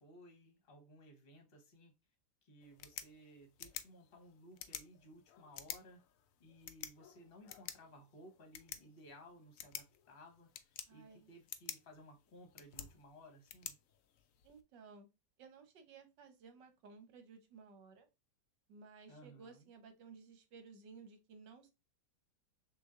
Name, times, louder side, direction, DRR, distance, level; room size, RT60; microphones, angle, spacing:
voice 1, 0.0-1.9 2.4-6.0 6.4-13.7 19.1-19.7, equal, 35° left, 1.1 m, -59 dB
sound 1, 2.6-14.6, left 9 dB, 85° left, 0.7 m, -51 dB
voice 2, 10.9-11.3 14.4-15.1 15.4-18.1 18.7-21.7, right 5 dB, 75° right, 1.5 m, -57 dB
6.2 x 2.8 x 2.4 m
omnidirectional pair, 2.0 m